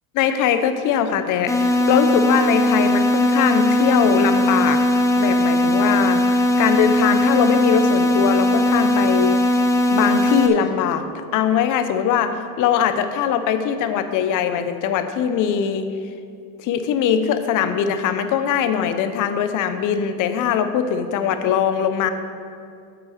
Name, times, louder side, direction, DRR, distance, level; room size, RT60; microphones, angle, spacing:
voice 1, 0.1-4.8 5.2-9.4 9.9-11.1 11.3-15.9 16.6-22.1, left 8 dB, 45° left, 9 dB, 0.8 m, -21 dB
sound 1, 1.5-10.5, left 1 dB, 5° left, 0.9 m, -18 dB
8.8 x 6.1 x 6.5 m, 2.4 s
supercardioid pair, 115°, 42 cm